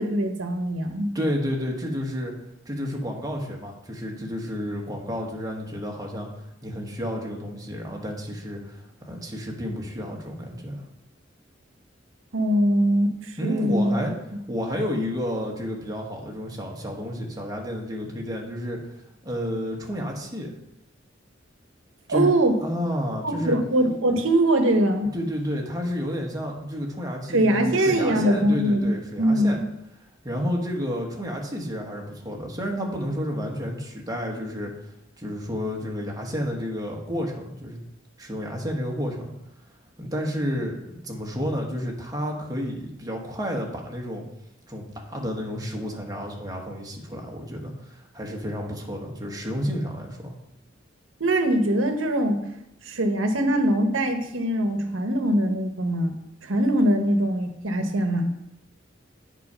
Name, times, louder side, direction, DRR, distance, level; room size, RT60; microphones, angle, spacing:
voice 1, 0.0-1.1 12.3-13.9 22.1-22.6 23.2-25.1 27.3-29.5 51.2-52.4 52.8-56.1 56.4-58.3, right 1 dB, 85° right, 6 dB, 1.0 m, -22 dB
voice 2, 1.1-2.3 2.6-6.3 6.6-10.8 13.4-14.1 14.5-18.8 19.2-20.5 22.1-22.3 22.6-23.6 25.1-29.6 30.2-34.7 35.2-37.8 38.2-39.3 40.0-44.2 44.7-50.3, equal, 20° right, 0 dB, 1.3 m, -31 dB
8.1 x 4.9 x 5.6 m, 0.85 s
head